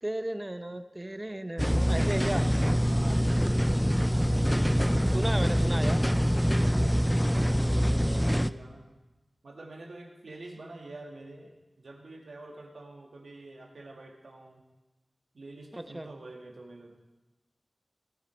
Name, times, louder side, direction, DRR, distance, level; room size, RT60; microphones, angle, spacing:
voice 1, 0.0-2.5 5.1-6.0 15.7-16.1, right 1 dB, 20° right, 10 dB, 0.8 m, -34 dB
sound 1, 1.6-8.5, equal, 5° left, 0.4 m, -25 dB
voice 2, 2.9-4.0 7.5-8.8 9.4-14.6 15.3-17.0, right 2 dB, 80° right, 1 dB, 2.0 m, -46 dB
17.5 x 9.3 x 4.5 m, 1.1 s
wide cardioid pair, 60°, 0 cm